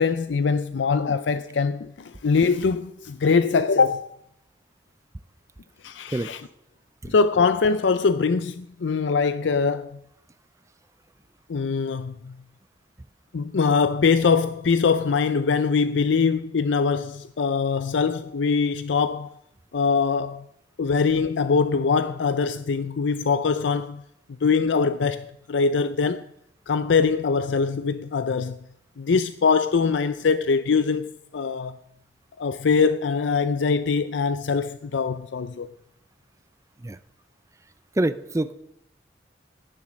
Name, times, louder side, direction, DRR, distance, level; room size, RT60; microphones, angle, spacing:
voice 1, 0.0-4.1 5.8-6.5 7.1-10.0 11.5-12.4 13.3-19.4 19.7-20.5 20.8-24.0 24.4-26.3 26.7-28.6 29.0-31.8 32.4-35.7, left 5 dB, 85° left, 0.5 m, -23 dB
voice 2, 38.0-38.5, right 1 dB, 15° right, 0.5 m, -25 dB
16.5 x 7.3 x 6.5 m
head